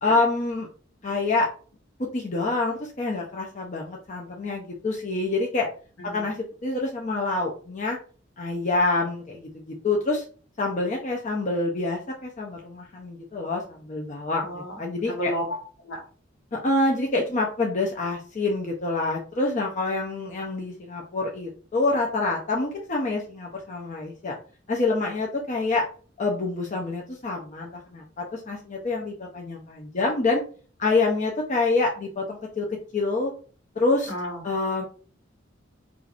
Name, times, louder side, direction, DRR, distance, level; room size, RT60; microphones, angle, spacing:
voice 1, 0.0-0.7 1.0-1.5 2.0-5.7 6.0-8.0 8.4-10.2 10.6-15.3 16.5-24.4 24.7-25.9 26.2-30.4 30.8-33.3 33.8-34.1 34.4-34.9, left 3 dB, 40° left, -1 dB, 0.6 m, -26 dB
voice 2, 14.4-14.8 15.1-15.6 15.8-16.0 34.1-34.4, equal, 75° left, 0 dB, 1.4 m, -31 dB
4.5 x 2.5 x 2.5 m, 0.41 s
head